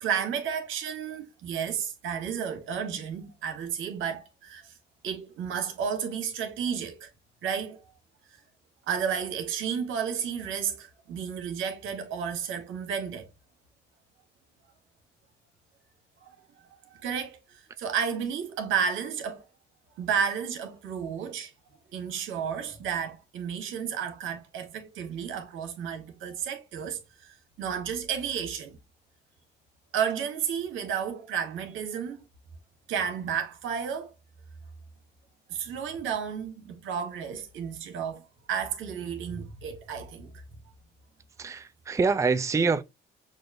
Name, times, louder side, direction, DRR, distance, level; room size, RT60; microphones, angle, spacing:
voice 1, 0.0-4.8 5.0-7.1 7.4-7.8 8.9-13.3 16.2-16.4 16.9-19.4 20.0-21.5 21.9-28.8 29.9-32.2 32.9-34.1 35.5-40.4, right 7 dB, 90° right, 1.1 m, -32 dB
voice 2, 41.4-42.8, right 4 dB, 15° right, 0.4 m, -25 dB
6.0 x 2.6 x 2.5 m
cardioid pair, 90°, 20 cm